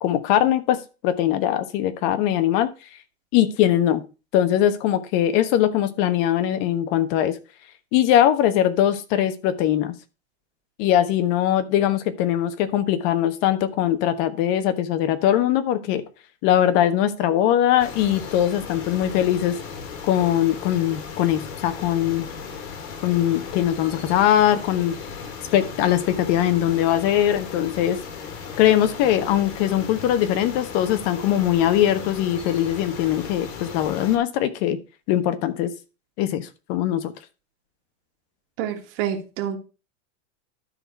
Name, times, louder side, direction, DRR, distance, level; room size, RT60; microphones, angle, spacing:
voice 1, 0.0-2.7 3.3-4.0 4.3-7.4 7.9-9.9 10.8-16.0 16.4-19.6 20.0-22.3 23.0-25.0 25.5-28.0 28.6-34.8 35.1-35.7 36.2-37.1, left 11 dB, 55° left, 10 dB, 1.3 m, -21 dB
sound 1, 17.8-34.2, left 6 dB, 70° left, 2.6 m, -36 dB
voice 2, 38.6-39.6, right 9 dB, 60° right, 5 dB, 1.9 m, -28 dB
12.5 x 4.2 x 4.6 m, 0.32 s
supercardioid pair, 135°, 38 cm